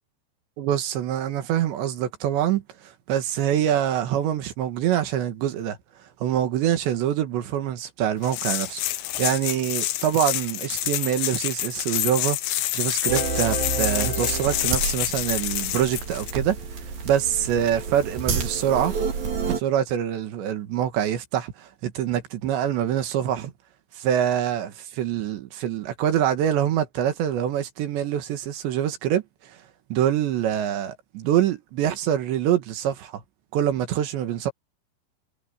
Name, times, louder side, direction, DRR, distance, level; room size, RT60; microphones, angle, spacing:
voice 1, 0.6-5.8 6.2-12.4 12.7-16.6 17.0-18.9 19.4-23.5 24.0-29.6 29.9-33.2 33.5-34.5, right 10 dB, 75° right, 3.9 m, -25 dB
sound 1, 8.2-16.3, left 15 dB, 80° left, 3.3 m, -28 dB
sound 2, 13.1-19.6, right 4 dB, 55° right, 5.2 m, -29 dB
omnidirectional pair, 5.1 m